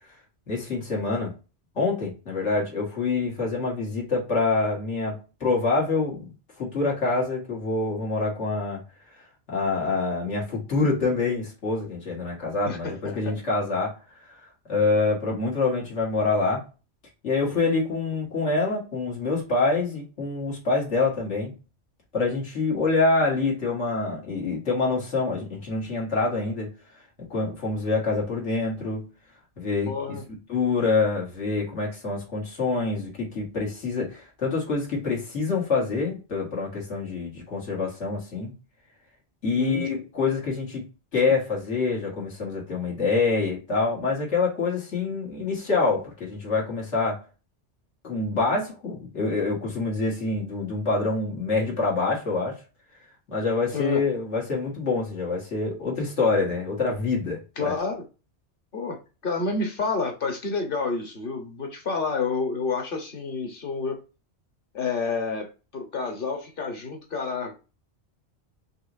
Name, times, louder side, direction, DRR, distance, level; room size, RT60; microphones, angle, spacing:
voice 1, 0.5-1.3 1.8-6.3 6.6-8.8 9.5-14.0 14.7-16.6 17.2-21.5 22.1-26.7 27.3-29.1 29.6-29.9 30.5-38.5 39.4-40.8 41.1-47.2 48.0-52.6 53.3-57.4 57.6-57.7, left 3 dB, 85° left, 2.1 m, -26 dB
voice 2, 12.6-13.3 29.8-30.2 39.5-39.8 53.7-54.0 57.6-58.0 58.7-59.0 59.2-64.0 64.7-65.5 65.7-67.6, left 4 dB, 50° left, 1.3 m, -29 dB
4.8 x 3.1 x 2.6 m
omnidirectional pair, 1.2 m